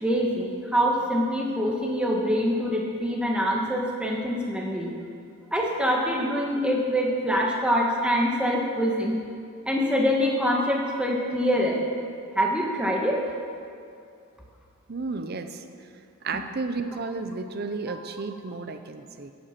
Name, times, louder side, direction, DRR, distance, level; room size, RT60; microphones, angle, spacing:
voice 1, 0.0-4.9 5.5-9.2 9.6-11.8 12.3-13.2 17.9-18.0, equal, 5° right, -1 dB, 1.5 m, -25 dB
voice 2, 14.9-15.6 16.2-19.3, right 3 dB, 45° right, 8 dB, 0.6 m, -32 dB
15.0 x 8.2 x 5.9 m, 2.4 s
head